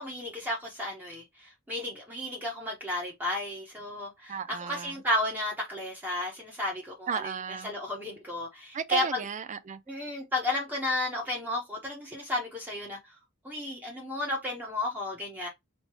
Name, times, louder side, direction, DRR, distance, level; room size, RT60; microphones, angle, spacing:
voice 1, 0.0-7.3 7.6-9.2 9.9-13.2 13.4-15.5, left 1 dB, 10° right, 0.9 m, -33 dB
voice 2, 4.3-5.0 7.1-7.7 8.7-10.1, right 6 dB, 35° right, 0.4 m, -34 dB
3.1 x 2.8 x 3.0 m
head